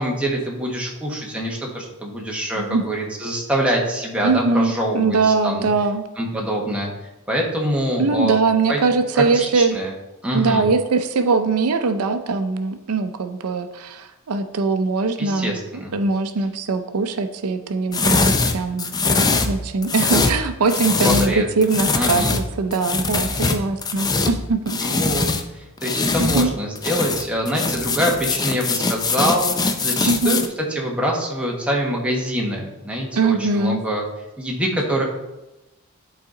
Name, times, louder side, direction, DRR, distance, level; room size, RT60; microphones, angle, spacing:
voice 1, 0.0-5.7 6.2-6.9 7.3-8.4 8.7-8.8 9.1-9.9 10.2-10.7 15.2-15.9 20.9-21.4 21.9-22.4 24.8-25.3 25.5-30.4 30.7-34.0 34.4-35.0, equal, 5° right, -2 dB, 1.2 m, -24 dB
voice 2, 4.2-6.0 8.0-9.8 10.3-15.6 15.9-18.9 19.4-24.8 26.2-26.5 30.1-30.4 33.1-33.8, right 4 dB, 85° right, 8 dB, 0.5 m, -21 dB
sound 1, 17.9-21.4 21.6-25.4 25.8-26.5 26.8-30.5, left 3 dB, 20° left, 0.4 m, -22 dB
11.0 x 4.1 x 3.8 m, 1.0 s
head